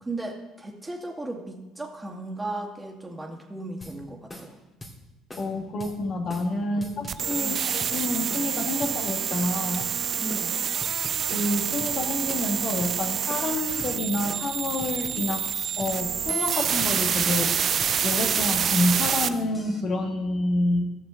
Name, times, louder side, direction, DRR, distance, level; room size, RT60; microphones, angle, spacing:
voice 1, 0.0-4.6 6.7-7.0 7.4-7.7 10.1-10.5, right 2 dB, 15° right, 1 dB, 2.2 m, -36 dB
sound 1, 3.8-4.0 4.3-4.5 4.8-5.0 5.3-5.5 5.8-6.0 6.3-6.5 6.8-8.0 8.3-8.5 8.8-9.0 9.3-9.5 9.8-10.0 10.3-10.5 10.8-12.0 12.3-12.5 12.8-13.0 13.3-13.5 13.8-14.0 14.3-14.5 14.8-16.0 16.3-16.5 16.8-17.0 17.3-17.5 17.8-18.0 18.3-18.5 18.8-19.8, left 1 dB, 25° left, 2.6 m, -42 dB
voice 2, 5.4-9.9 11.2-15.5 15.8-17.6 18.0-21.0, left 2 dB, 50° left, 2 dB, 2.0 m, -28 dB
sound 2, 7.1-19.3, right 8 dB, 50° right, 0.4 m, -27 dB
17.0 x 6.7 x 3.9 m, 1.0 s
hypercardioid pair, 60°, 0 cm